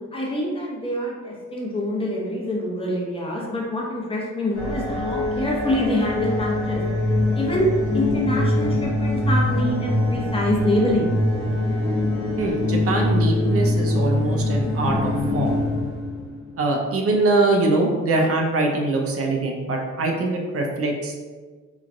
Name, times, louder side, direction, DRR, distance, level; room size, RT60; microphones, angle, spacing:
voice 1, 0.1-6.8 7.4-7.7 7.9-11.1, left 1 dB, 20° left, -3 dB, 0.7 m, -25 dB
sound 1, 4.5-16.6, left 1 dB, 60° left, 1.0 m, -23 dB
voice 2, 12.4-15.5 16.6-21.2, right 2 dB, 50° right, 1 dB, 0.5 m, -23 dB
3.1 x 2.3 x 2.5 m, 1.4 s
cardioid pair, 90°, 30 cm